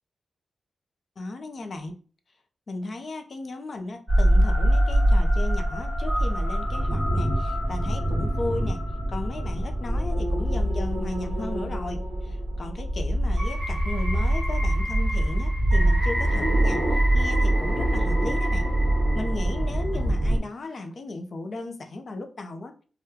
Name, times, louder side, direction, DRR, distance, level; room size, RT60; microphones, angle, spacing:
voice 1, 1.2-2.0 2.7-8.8 9.1-18.7 19.1-22.7, left 2 dB, 50° left, 6 dB, 0.5 m, -36 dB
sound 1, 4.1-20.4, right 1 dB, ahead, 1.6 m, -24 dB
3.6 x 2.2 x 2.7 m, 0.39 s
wide cardioid pair, 115°, 0 cm